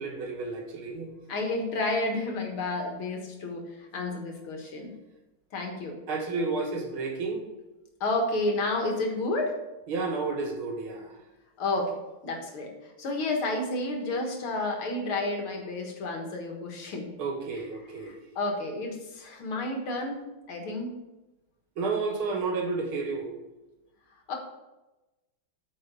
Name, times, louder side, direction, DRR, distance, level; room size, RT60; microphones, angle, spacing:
voice 1, 0.0-1.1 6.1-7.4 9.9-11.1 17.2-18.2 21.8-23.3, right 4 dB, 80° right, 3 dB, 2.3 m, -31 dB
voice 2, 1.3-5.0 5.5-6.0 8.0-9.6 11.6-12.0 12.2-17.1 17.5-17.6 18.0-20.2 20.5-20.9 24.3-24.4, left 2 dB, 80° left, 2 dB, 2.5 m, -31 dB
9.1 x 5.3 x 5.4 m, 1.0 s
omnidirectional pair, 2.3 m